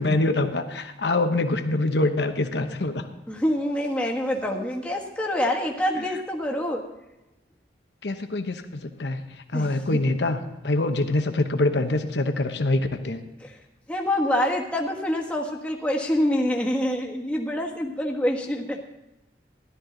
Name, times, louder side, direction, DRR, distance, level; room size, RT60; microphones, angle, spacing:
voice 1, 0.0-3.0 8.0-10.4 10.6-13.2, left 2 dB, 75° left, 7 dB, 1.0 m, -25 dB
voice 2, 3.3-6.8 9.5-10.0 13.4-13.5 13.9-18.8, left 1 dB, 5° left, -1 dB, 1.4 m, -26 dB
14.0 x 12.5 x 3.9 m, 0.94 s
head